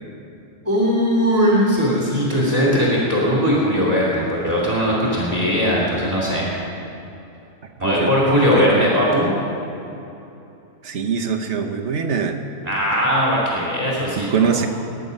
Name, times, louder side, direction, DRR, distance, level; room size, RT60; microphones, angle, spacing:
voice 1, 0.6-6.5 7.8-9.3 12.6-14.5, equal, 25° right, -5 dB, 2.9 m, -19 dB
voice 2, 7.8-8.1 8.5-8.9 10.8-12.4 14.3-14.7, right 6 dB, 50° right, 4 dB, 1.2 m, -22 dB
20.5 x 9.2 x 5.4 m, 2.9 s
omnidirectional pair, 1.6 m